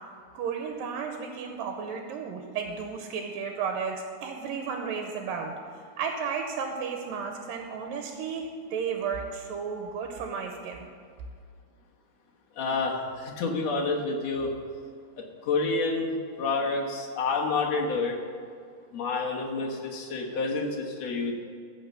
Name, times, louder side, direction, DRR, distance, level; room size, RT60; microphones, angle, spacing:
voice 1, 0.3-5.5 6.0-10.9, right 6 dB, 75° right, 4 dB, 2.4 m, -33 dB
voice 2, 12.6-14.5 15.4-18.2 18.9-21.3, left 3 dB, 60° left, -1 dB, 2.1 m, -28 dB
14.5 x 5.6 x 6.7 m, 2.3 s
omnidirectional pair, 4.2 m